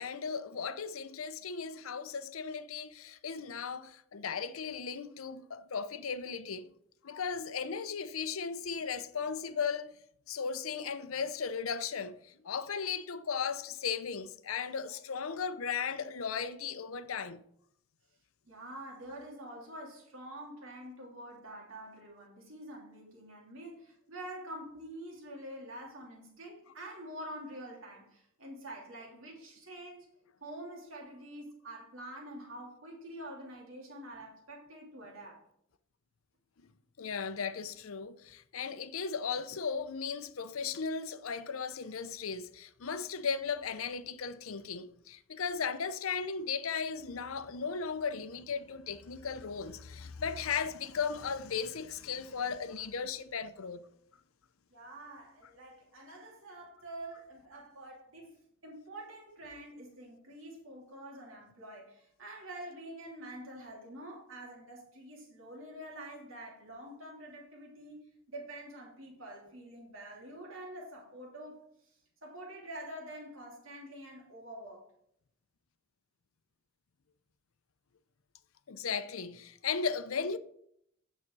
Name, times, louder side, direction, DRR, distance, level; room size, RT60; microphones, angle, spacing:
voice 1, 0.0-6.7 7.0-9.9 10.3-17.4 37.0-53.8 78.7-80.4, left 6 dB, 80° left, 0.6 m, -36 dB
voice 2, 18.4-30.1 30.4-35.4 54.7-58.3 58.6-71.9 72.2-74.8, right 1 dB, 70° right, 3.1 m, -47 dB
9.1 x 7.3 x 4.6 m
head